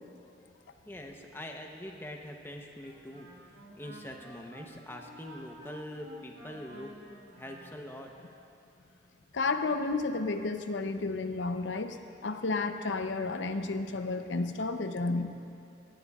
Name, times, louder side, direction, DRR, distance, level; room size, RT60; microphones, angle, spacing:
voice 1, 0.8-6.9 7.3-8.1, left 1 dB, 10° left, 2 dB, 0.8 m, -44 dB
Wind instrument woodwind instrument, 2.8-8.2, right 1 dB, 75° right, 2.9 m, -51 dB
voice 2, 9.3-15.4, left 3 dB, 85° left, 8 dB, 0.6 m, -32 dB
18.5 x 14.0 x 2.4 m, 2.7 s
head